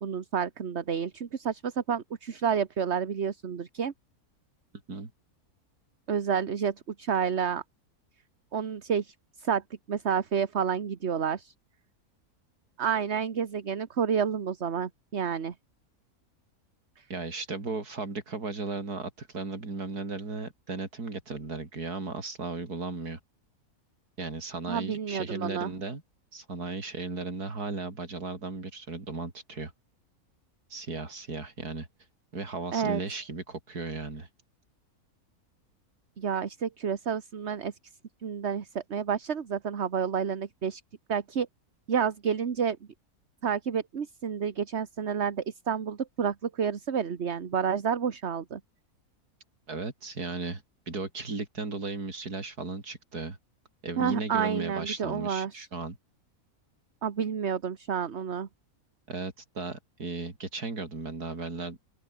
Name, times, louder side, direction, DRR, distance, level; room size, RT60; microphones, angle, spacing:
voice 1, 0.0-3.9 6.1-7.6 8.5-9.6 9.9-11.5 12.8-15.5 17.0-17.1 24.7-25.7 32.7-33.0 36.2-37.7 38.2-40.8 41.1-41.5 41.9-42.8 43.4-48.6 54.0-55.7 57.0-58.5, right 7 dB, 45° right, 1.5 m, -30 dB
voice 2, 17.1-23.2 24.2-26.0 26.3-29.7 30.7-31.9 32.3-34.3 49.7-53.4 53.8-56.0 59.1-61.8, right 3 dB, 90° right, 4.2 m, -36 dB
open air
omnidirectional pair, 1.6 m